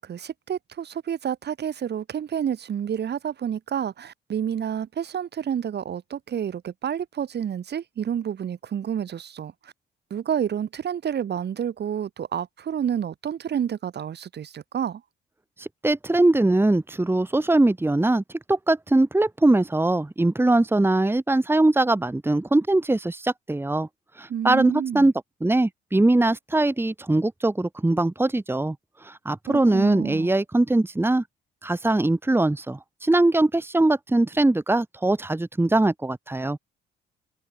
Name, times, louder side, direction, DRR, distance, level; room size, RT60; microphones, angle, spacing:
voice 1, 0.0-9.5 10.1-15.0 24.3-25.1 29.5-30.3, right 8 dB, 55° right, 3.7 m, -29 dB
voice 2, 15.6-18.2 18.5-23.9 24.2-25.1 25.4-28.8 29.0-31.2 31.6-36.6, right 2 dB, 10° right, 2.1 m, -21 dB
cardioid pair, 90°, 20 cm